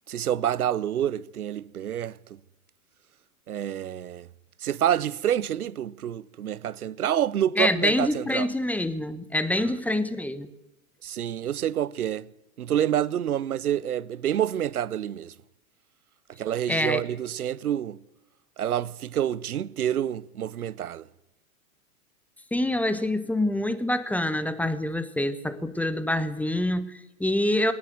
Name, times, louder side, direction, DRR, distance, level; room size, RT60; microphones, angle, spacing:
voice 1, 0.1-2.2 3.5-4.3 4.6-8.5 9.6-9.7 11.0-12.3 12.6-15.3 16.4-18.0 18.6-21.1, right 10 dB, 90° right, 0.8 m, -28 dB
voice 2, 7.6-10.5 16.7-17.0 22.5-27.7, left 1 dB, 5° left, 1.3 m, -26 dB
20.0 x 18.5 x 9.4 m
hypercardioid pair, 115°, 43 cm